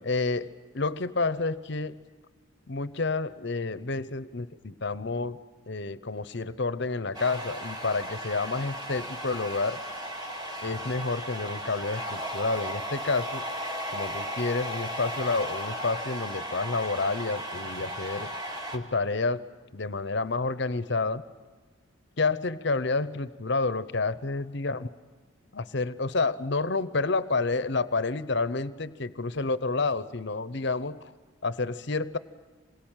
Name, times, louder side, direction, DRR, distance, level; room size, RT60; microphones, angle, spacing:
voice 1, 0.0-2.0 2.7-5.4 5.7-9.8 10.6-13.4 13.9-18.3 18.7-19.5 19.7-21.2 22.2-24.9 25.5-31.1 31.4-32.2, left 3 dB, 55° left, 15 dB, 0.9 m, -29 dB
sound 1, 7.1-18.8, equal, 20° right, 2.5 m, -36 dB
27.0 x 22.5 x 9.0 m, 1.4 s
head